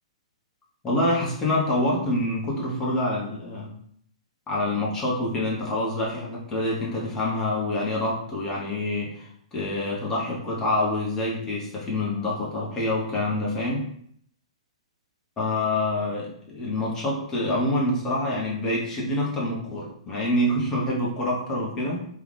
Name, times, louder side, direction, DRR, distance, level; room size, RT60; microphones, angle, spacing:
voice 1, 0.8-3.7 4.5-13.8 15.4-22.0, left 1 dB, 20° left, -5 dB, 1.1 m, -26 dB
3.3 x 2.5 x 3.3 m, 0.65 s
figure-of-eight pair, 115°, 3 cm